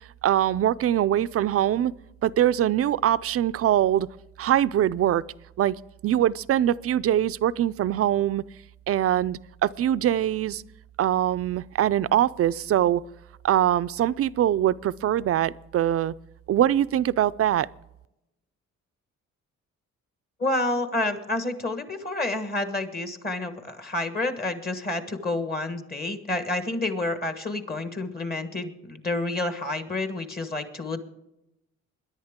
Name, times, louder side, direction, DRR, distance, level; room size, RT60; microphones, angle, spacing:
voice 1, 0.2-1.9 2.2-4.1 4.4-5.2 5.6-5.8 6.0-8.4 8.9-10.6 11.0-13.0 13.4-16.1 16.5-17.7, right 11 dB, 50° right, 0.4 m, -23 dB
voice 2, 20.4-31.0, left 2 dB, 30° left, 1.4 m, -29 dB
22.5 x 10.5 x 3.7 m
cardioid pair, 90°, 30 cm